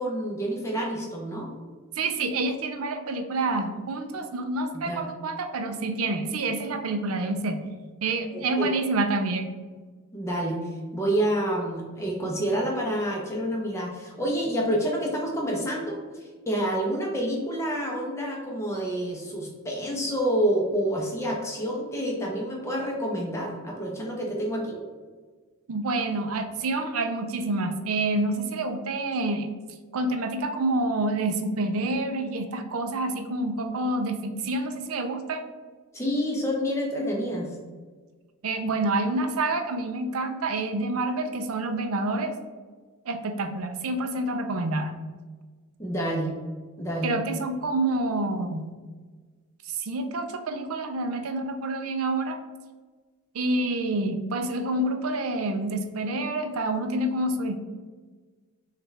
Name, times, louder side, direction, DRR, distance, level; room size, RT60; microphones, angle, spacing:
voice 1, 0.0-1.5 4.9-5.0 8.6-8.7 10.1-16.0 16.5-24.8 35.9-37.5 45.8-46.3 46.8-47.1, equal, 15° left, -2 dB, 0.8 m, -28 dB
voice 2, 2.0-7.6 8.0-9.5 25.7-29.5 29.9-35.4 38.4-42.3 43.1-45.0 47.0-48.7 49.7-52.4 53.3-57.6, right 2 dB, 80° right, 7 dB, 0.5 m, -28 dB
6.0 x 2.5 x 3.3 m, 1.4 s
head